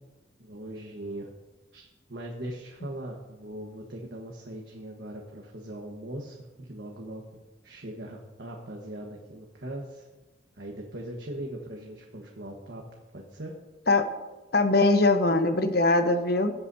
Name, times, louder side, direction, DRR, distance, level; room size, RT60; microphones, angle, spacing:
voice 1, 0.4-1.3 1.7-7.2 7.6-10.1 10.6-12.8 13.1-13.5, right 1 dB, 80° right, 0 dB, 1.4 m, -40 dB
voice 2, 14.5-16.5, left 2 dB, 65° left, 8 dB, 1.0 m, -22 dB
19.0 x 8.2 x 2.8 m, 1.1 s
head